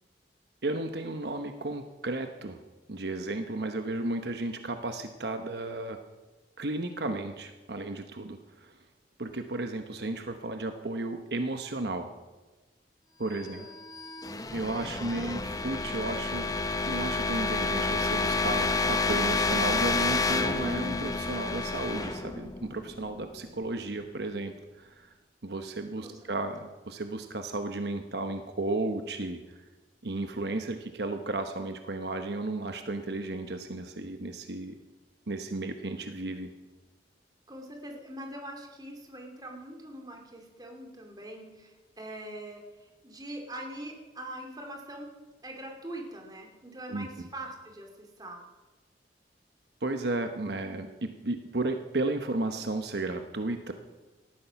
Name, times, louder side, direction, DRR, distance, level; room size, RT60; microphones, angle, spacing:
voice 1, 0.6-2.6 2.9-6.0 6.6-8.8 9.2-12.1 13.2-13.7 14.5-16.5 16.8-25.1 25.4-29.6 30.0-34.8 35.3-36.5 46.9-47.3 49.8-53.7, right 2 dB, 65° right, 6 dB, 1.0 m, -34 dB
voice 2, 13.3-13.7 26.0-26.1 26.4-26.5 37.5-45.1 45.4-48.5, right 1 dB, 25° right, 2 dB, 2.7 m, -43 dB
sound 1, 13.5-23.3, left 3 dB, 20° left, 0.8 m, -29 dB
18.0 x 13.5 x 5.9 m, 1.2 s
head